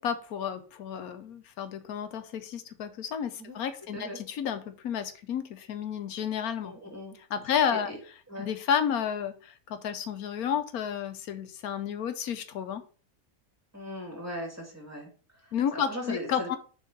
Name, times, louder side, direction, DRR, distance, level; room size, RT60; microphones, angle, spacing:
voice 1, 0.0-6.7 7.3-7.9 8.4-12.8 15.5-16.6, left 8 dB, 85° left, 9 dB, 1.3 m, -31 dB
voice 2, 6.6-7.2 7.7-8.0 8.3-8.5 13.7-15.1 15.4-16.6, equal, 10° right, 0 dB, 2.4 m, -39 dB
7.1 x 3.7 x 5.4 m, 0.39 s
omnidirectional pair, 1.5 m